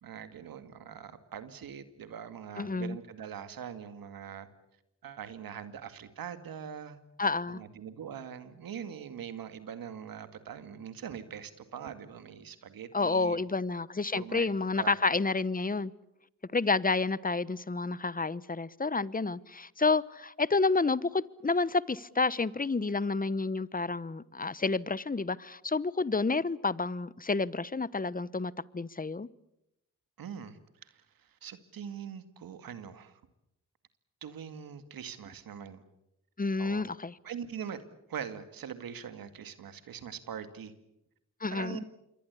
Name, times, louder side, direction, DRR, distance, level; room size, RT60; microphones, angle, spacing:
voice 1, 0.0-4.5 5.0-7.0 7.5-13.4 14.1-14.5 14.7-14.9 30.2-33.2 34.2-35.8 36.6-36.8 37.2-37.8 38.1-40.7 41.5-41.8, right 8 dB, 75° right, 2.3 m, -42 dB
voice 2, 2.6-3.0 7.2-7.6 12.9-15.9 16.5-29.3 36.4-37.1 41.4-41.8, left 3 dB, 25° left, 1.1 m, -30 dB
27.5 x 23.0 x 8.4 m
supercardioid pair, 45°, 35 cm